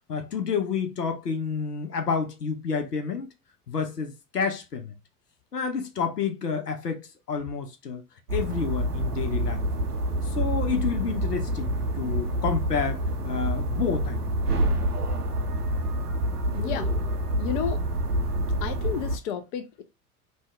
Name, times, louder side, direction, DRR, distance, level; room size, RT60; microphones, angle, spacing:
voice 1, 0.1-3.3 3.7-4.9 5.5-8.0 8.3-9.6 10.3-14.2, left 6 dB, 85° left, 0.6 m, -29 dB
sound 1, 8.3-19.2, right 1 dB, 85° right, 0.6 m, -27 dB
voice 2, 16.5-16.9 17.4-17.8 18.6-19.8, left 9 dB, 45° left, 0.6 m, -31 dB
2.6 x 2.2 x 3.3 m
figure-of-eight pair, 75°, 46 cm